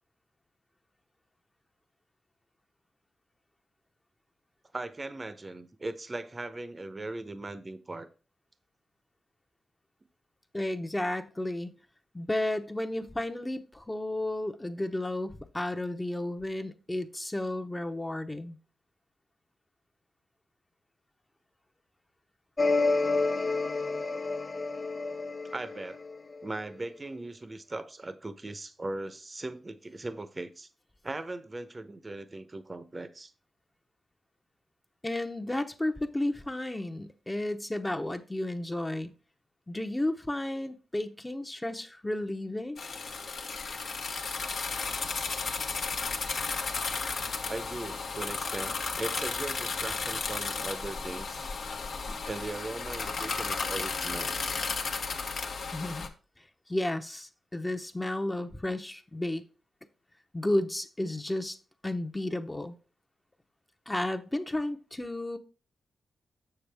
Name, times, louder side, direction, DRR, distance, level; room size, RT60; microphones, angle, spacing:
voice 1, 4.7-8.1 25.4-26.0 26.4-30.7 31.0-33.3 47.5-51.5 52.1-54.7, right 2 dB, 35° right, 0.8 m, -39 dB
voice 2, 10.5-11.7 12.1-18.6 35.0-39.1 39.7-42.8 55.7-56.1 56.4-59.4 60.3-61.6 61.8-62.8 63.9-65.4, left 1 dB, 20° left, 0.8 m, -32 dB
sound 1, 22.6-26.5, left 3 dB, 40° left, 0.5 m, -29 dB
sound 2, 42.8-56.1, left 4 dB, 70° left, 1.0 m, -34 dB
6.9 x 6.8 x 3.4 m
cardioid pair, 55°, 0 cm